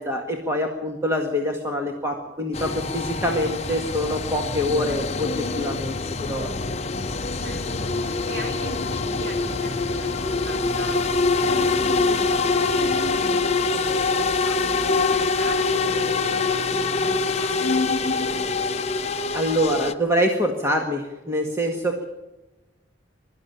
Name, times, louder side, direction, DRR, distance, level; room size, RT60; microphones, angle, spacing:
voice 1, 0.0-6.5 19.3-22.1, equal, 15° right, 1 dB, 1.8 m, -25 dB
sound 1, 2.5-19.9, left 3 dB, 35° left, 0.9 m, -24 dB
voice 2, 7.4-17.8, equal, 50° right, 3 dB, 5.4 m, -38 dB
22.5 x 13.0 x 9.2 m, 1.0 s
head